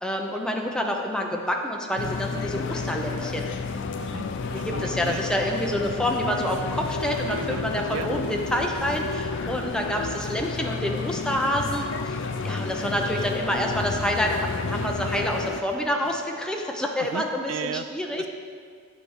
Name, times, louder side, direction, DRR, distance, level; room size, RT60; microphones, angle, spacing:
voice 1, 0.0-3.5 4.5-18.2, equal, 5° left, 1 dB, 0.7 m, -28 dB
sound 1, 2.0-15.6, left 4 dB, 60° left, 0.4 m, -31 dB
sound 2, 2.6-9.2 12.9-16.3, right 1 dB, 35° right, 1.5 m, -51 dB
voice 2, 4.0-5.2 7.3-8.1 17.0-17.9 18.2-18.3, right 7 dB, 75° right, 12 dB, 0.3 m, -36 dB
8.9 x 4.6 x 6.5 m, 2.1 s
head